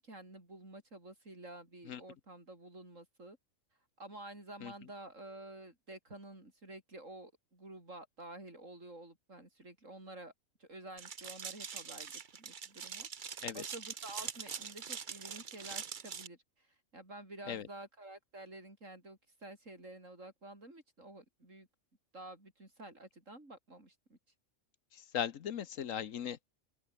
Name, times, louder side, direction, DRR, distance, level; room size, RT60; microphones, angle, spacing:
voice 1, 0.0-3.4 4.0-10.3 10.6-16.7 16.9-21.7 22.1-24.2, right 1 dB, 65° right, 7.7 m, -50 dB
sound 1, 11.0-16.3, right 6 dB, 40° right, 0.9 m, -43 dB
voice 2, 24.9-26.4, left 9 dB, 70° left, 1.3 m, -38 dB
open air
omnidirectional pair, 1.4 m